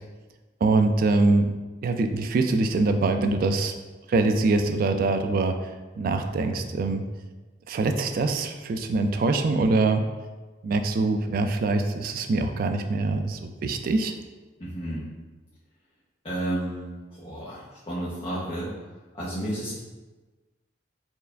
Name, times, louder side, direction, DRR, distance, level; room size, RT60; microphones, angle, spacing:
voice 1, 0.6-1.5 1.8-3.7 4.1-5.6 6.0-7.0 7.7-10.0 10.6-14.1, right 3 dB, 50° right, 6 dB, 0.3 m, -23 dB
voice 2, 14.6-15.1 16.2-18.7 19.1-19.8, right 1 dB, 30° left, -10 dB, 0.8 m, -32 dB
4.4 x 2.4 x 3.3 m, 1.3 s
head